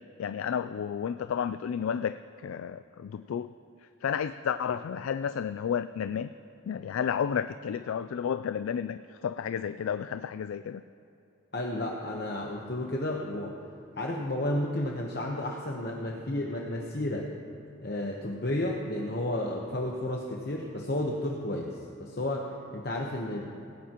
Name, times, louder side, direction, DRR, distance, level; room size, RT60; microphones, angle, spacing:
voice 1, 0.0-3.5 4.0-6.3 6.7-10.8, left 7 dB, 85° left, 12 dB, 0.3 m, -32 dB
voice 2, 11.5-13.5 14.0-17.3 17.8-23.5, left 1 dB, 50° left, -1 dB, 1.0 m, -32 dB
17.0 x 17.0 x 3.0 m, 2.7 s
head